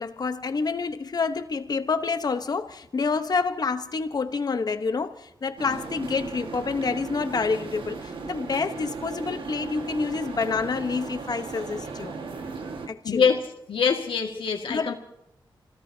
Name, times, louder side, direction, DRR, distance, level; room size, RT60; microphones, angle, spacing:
voice 1, 0.0-12.2 12.9-13.2 14.7-14.9, left 4 dB, 50° left, 1.0 m, -28 dB
sound 1, 5.6-12.9, right 4 dB, 80° right, 1.7 m, -36 dB
voice 2, 13.0-13.4 13.7-14.9, left 6 dB, 85° left, 2.0 m, -24 dB
28.0 x 17.5 x 2.8 m
wide cardioid pair, 115°, 9 cm